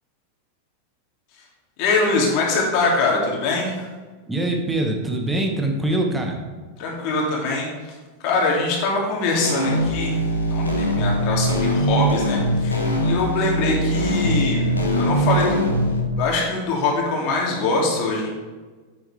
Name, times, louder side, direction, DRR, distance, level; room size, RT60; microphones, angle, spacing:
voice 1, 1.8-3.9 6.8-7.7 8.2-10.1 10.5-15.7 16.2-18.3, left 3 dB, 45° left, -2 dB, 2.6 m, -23 dB
voice 2, 4.3-6.4, right 1 dB, 10° right, 1 dB, 1.6 m, -23 dB
sound 1, 9.4-16.0, equal, 80° left, 1.4 m, -22 dB
8.9 x 8.8 x 3.4 m, 1.4 s
figure-of-eight pair, 90°, 0 cm